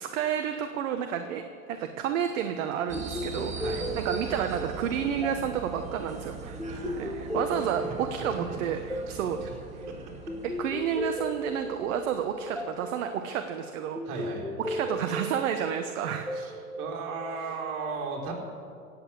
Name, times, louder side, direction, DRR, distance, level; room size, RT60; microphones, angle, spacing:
voice 1, 0.0-6.6 7.0-7.1 7.3-9.5 9.7-9.9 10.4-14.3 14.6-16.5 17.4-17.5, right 8 dB, 60° right, 7 dB, 1.1 m, -31 dB
sound 1, 2.9-17.7, equal, 5° left, 1.2 m, -37 dB
sound 2, 2.9-12.8, right 5 dB, 15° right, 2.3 m, -41 dB
voice 2, 7.6-8.6 9.1-9.5 9.9-10.1 14.1-14.4 16.3-16.5 16.8-18.3, right 4 dB, 45° right, -2 dB, 4.6 m, -36 dB
17.0 x 8.0 x 8.3 m, 2.4 s
hypercardioid pair, 105°, 44 cm